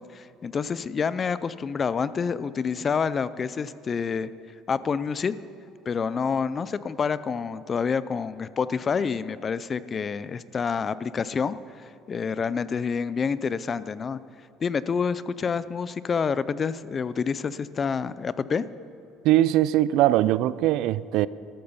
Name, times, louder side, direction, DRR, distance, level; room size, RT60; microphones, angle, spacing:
voice 1, 0.1-4.3 4.7-5.4 5.9-14.2 14.6-18.6, left 6 dB, 25° left, 0.4 m, -28 dB
voice 2, 19.2-21.3, right 14 dB, 65° right, 0.3 m, -21 dB
14.0 x 13.0 x 5.5 m
cardioid pair, 155°, 0 cm